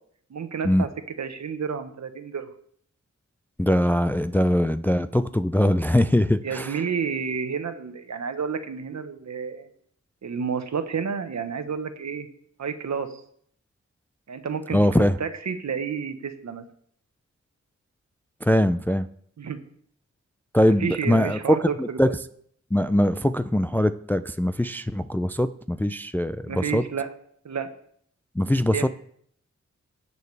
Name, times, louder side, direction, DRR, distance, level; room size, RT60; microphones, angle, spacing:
voice 1, 0.3-0.9 1.2-2.5 6.4-9.7 10.2-12.3 12.6-13.1 14.3-14.8 15.2-16.6 19.4-19.6 20.8-22.2 26.5-27.1 27.4-27.7 28.7-28.9, right 6 dB, 70° right, 8 dB, 1.1 m, -30 dB
voice 2, 3.6-6.8 14.7-15.2 18.4-19.1 20.5-22.1 22.7-26.8 28.4-28.9, left 1 dB, 5° left, 12 dB, 0.3 m, -22 dB
17.5 x 6.8 x 3.3 m, 0.64 s
wide cardioid pair, 80°, 29 cm